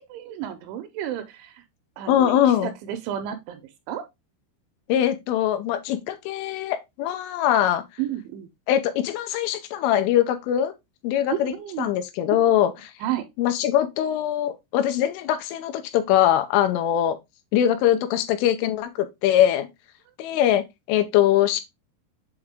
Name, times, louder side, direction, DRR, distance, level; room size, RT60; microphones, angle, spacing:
voice 1, 0.0-1.6 2.0-3.6 3.9-4.1 8.0-8.5 11.3-11.9 13.0-13.2, right 11 dB, 80° right, 2.8 m, -31 dB
voice 2, 2.1-2.7 4.9-7.8 8.7-10.7 11.0-12.7 13.4-17.2 17.5-19.7 20.2-20.6 20.9-21.6, left 11 dB, 85° left, 3.1 m, -22 dB
8.0 x 3.5 x 3.5 m
omnidirectional pair, 5.7 m